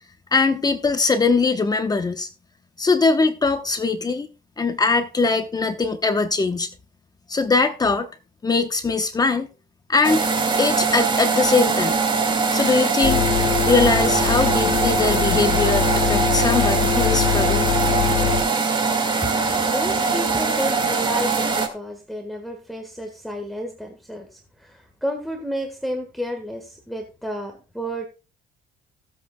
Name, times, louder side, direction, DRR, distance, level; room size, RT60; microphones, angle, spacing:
voice 1, 0.3-2.3 2.8-4.3 4.6-6.7 7.3-8.1 8.4-9.5 9.9-10.3 10.6-12.0 12.5-13.2 13.6-17.7, left 4 dB, 25° left, 1.0 m, -21 dB
sound 1, 10.0-21.7, right 4 dB, 30° right, 2.0 m, -22 dB
sound 2, 13.0-18.4, left 8 dB, 60° left, 2.2 m, -23 dB
voice 2, 19.2-28.1, equal, ahead, 1.5 m, -31 dB
18.5 x 7.9 x 2.3 m
cardioid pair, 110°, 17 cm